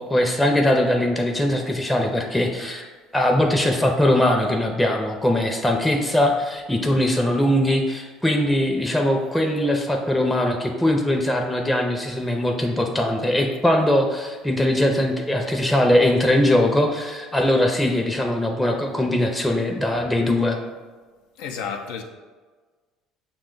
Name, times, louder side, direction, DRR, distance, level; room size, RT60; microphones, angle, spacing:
voice 1, 0.0-2.9 3.1-20.6, left 1 dB, 5° left, 1 dB, 0.6 m, -21 dB
voice 2, 21.4-22.0, left 6 dB, 75° left, 3 dB, 0.4 m, -31 dB
5.8 x 2.2 x 3.8 m, 1.4 s
hypercardioid pair, 75°, 0 cm